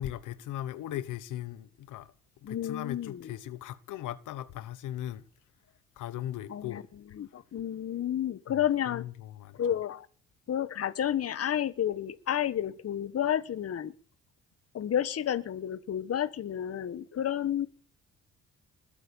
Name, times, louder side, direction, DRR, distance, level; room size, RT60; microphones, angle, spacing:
voice 1, 0.0-2.1 2.4-5.3 6.0-6.8 8.5-8.6 8.9-9.6, left 12 dB, 85° left, 1.2 m, -38 dB
voice 2, 2.4-3.2 6.5-6.8 7.2-9.1 9.5-10.1 10.5-13.9 14.7-17.7, left 10 dB, 55° left, 1.3 m, -31 dB
21.0 x 8.8 x 7.0 m
cardioid pair, 90°, 30 cm